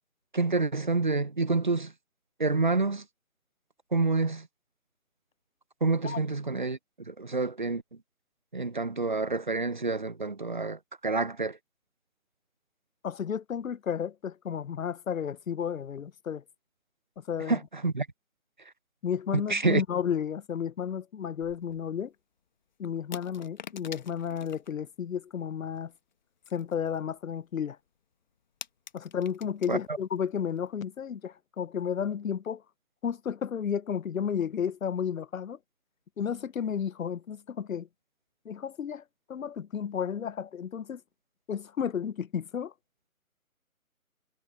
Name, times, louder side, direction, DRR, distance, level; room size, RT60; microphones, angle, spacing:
voice 1, 0.3-1.9 2.4-3.0 3.9-4.5 5.8-6.8 7.1-7.8 8.5-11.6 17.5-18.1 19.3-19.8 29.7-30.0, right 3 dB, 35° right, 0.5 m, -28 dB
voice 2, 13.0-16.4 17.2-17.6 19.0-22.1 22.8-25.9 26.5-27.8 28.9-32.6 33.0-35.6 36.2-37.9 38.5-39.0 39.3-41.0 41.5-42.7, left 8 dB, 65° left, 0.7 m, -32 dB
sound 1, 21.4-21.9 23.1-24.7 25.8-26.1 26.5-27.1 27.4-27.6 27.9-28.0 28.1-29.8 30.1-30.3 30.6-30.7, left 7 dB, 30° left, 1.2 m, -46 dB
figure-of-eight pair, 155°, 43 cm